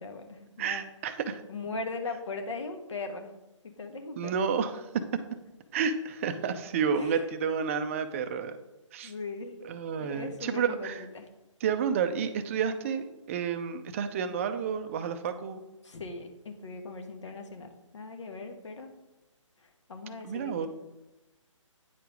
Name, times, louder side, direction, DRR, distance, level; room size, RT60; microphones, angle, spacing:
voice 1, 0.0-0.9 1.5-3.3 3.6-4.4 6.9-7.2 9.0-9.6 10.0-11.3 15.8-18.9 19.9-20.7, left 3 dB, 65° left, 6 dB, 1.5 m, -39 dB
voice 2, 0.6-1.4 4.2-5.0 5.7-8.6 8.9-9.1 9.6-11.0 11.6-15.6 20.2-20.7, right 6 dB, 25° right, 9 dB, 0.5 m, -30 dB
9.3 x 4.6 x 5.1 m, 0.99 s
figure-of-eight pair, 150°, 17 cm